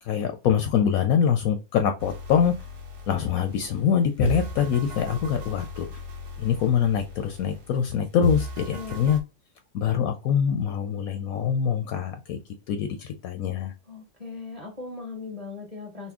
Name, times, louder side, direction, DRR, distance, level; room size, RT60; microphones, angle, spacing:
voice 1, 0.0-2.5 3.1-5.9 6.4-9.2 9.7-12.4 12.7-13.7, left 8 dB, 70° left, 7 dB, 0.9 m, -24 dB
sound 1, 2.0-3.9 4.2-7.9 8.2-9.2, right 1 dB, 80° right, 1.5 m, -34 dB
voice 2, 8.7-9.1 13.9-16.1, left 4 dB, 25° right, 0 dB, 1.4 m, -38 dB
4.1 x 2.1 x 3.6 m, 0.29 s
omnidirectional pair, 1.7 m